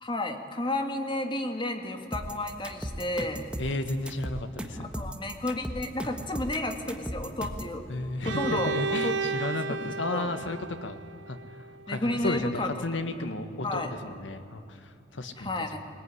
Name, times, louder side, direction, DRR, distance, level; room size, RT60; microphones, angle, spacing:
voice 1, 0.0-3.5 4.9-7.9 8.2-8.7 9.0-9.2 9.7-9.8 10.0-10.3 11.9-12.7 13.6-13.9 15.4-15.8, left 1 dB, 25° left, 5 dB, 1.9 m, -31 dB
sound 1, 2.1-7.8, equal, 5° right, 1.4 m, -36 dB
voice 2, 3.6-4.9 7.9-11.0 11.3-11.4 11.9-15.5, left 2 dB, 85° left, 9 dB, 1.6 m, -33 dB
Bowed string instrument, 8.2-12.1, right 4 dB, 75° right, 0.7 m, -33 dB
20.5 x 20.0 x 9.7 m, 2.6 s
head